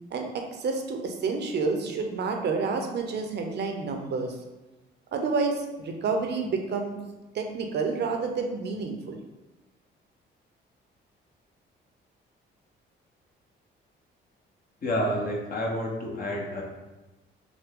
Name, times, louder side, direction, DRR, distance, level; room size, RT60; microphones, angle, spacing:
voice 1, 0.1-4.3 5.1-6.9 7.3-9.2, right 4 dB, 60° right, 3 dB, 0.8 m, -29 dB
voice 2, 14.8-16.6, equal, 45° left, -1 dB, 1.1 m, -29 dB
6.0 x 2.2 x 3.6 m, 1.1 s
cardioid pair, 90°, 20 cm